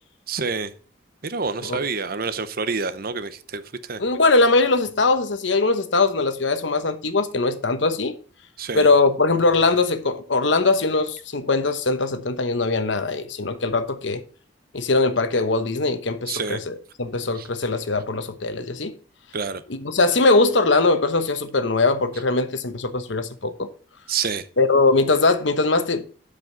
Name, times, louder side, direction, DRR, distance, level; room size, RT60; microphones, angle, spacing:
voice 1, 0.3-0.7 1.2-4.0 8.6-8.9 16.3-16.6 17.3-17.5 19.3-19.6 24.1-24.5, right 5 dB, 50° right, 0.8 m, -28 dB
voice 2, 4.0-8.2 8.7-14.2 14.7-18.9 19.8-23.7 24.6-26.0, left 3 dB, 70° left, 1.0 m, -21 dB
12.0 x 5.2 x 3.9 m
head